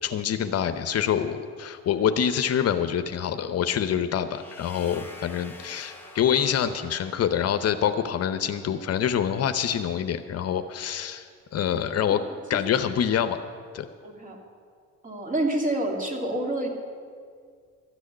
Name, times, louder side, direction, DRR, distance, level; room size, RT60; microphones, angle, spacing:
voice 1, 0.0-12.2 12.5-13.4 13.7-13.8, left 9 dB, 55° left, 9 dB, 0.7 m, -26 dB
sound 1, 4.3-8.2, left 2 dB, 5° left, 1.7 m, -47 dB
voice 2, 14.0-14.4 15.0-16.7, right 1 dB, 25° right, 1 dB, 2.6 m, -28 dB
13.0 x 6.3 x 9.9 m, 2.1 s
cardioid pair, 85°, 30 cm